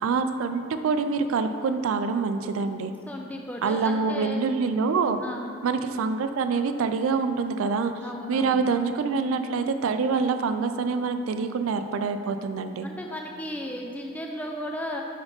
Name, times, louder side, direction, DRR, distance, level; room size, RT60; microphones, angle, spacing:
voice 1, 0.0-2.9 3.6-5.2 5.6-7.9 8.3-12.9, right 4 dB, 90° right, 8 dB, 0.3 m, -26 dB
voice 2, 3.1-4.4 5.2-5.5 8.0-8.6 12.8-15.0, left 1 dB, 5° left, 1 dB, 0.3 m, -35 dB
5.3 x 4.7 x 5.2 m, 2.5 s
head